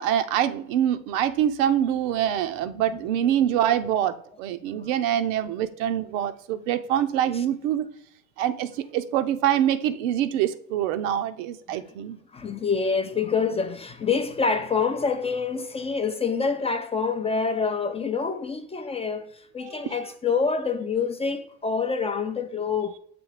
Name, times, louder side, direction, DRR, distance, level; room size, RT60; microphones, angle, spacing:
voice 1, 0.0-7.9 8.4-12.2 19.6-19.9, right 10 dB, 90° right, 0.7 m, -25 dB
voice 2, 12.3-23.0, left 5 dB, 20° left, 0.3 m, -27 dB
7.0 x 2.8 x 4.8 m
supercardioid pair, 115°, 38 cm